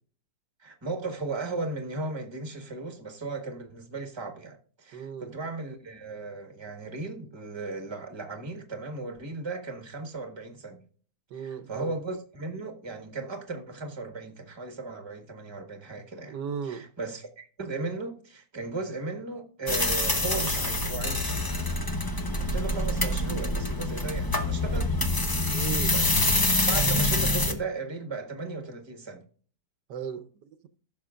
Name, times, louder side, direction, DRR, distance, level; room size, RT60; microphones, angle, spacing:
voice 1, 0.6-10.8 11.3-16.4 16.6-21.5 22.4-25.0 25.9-26.1 26.6-29.2, right 3 dB, 15° right, 1.4 m, -36 dB
voice 2, 4.9-5.3 11.3-11.9 16.3-16.8 25.5-26.0 29.9-30.7, right 7 dB, 80° right, 1.5 m, -36 dB
sound 1, 19.7-27.5, left 2 dB, 20° left, 0.5 m, -26 dB
15.5 x 6.5 x 2.5 m
omnidirectional pair, 1.8 m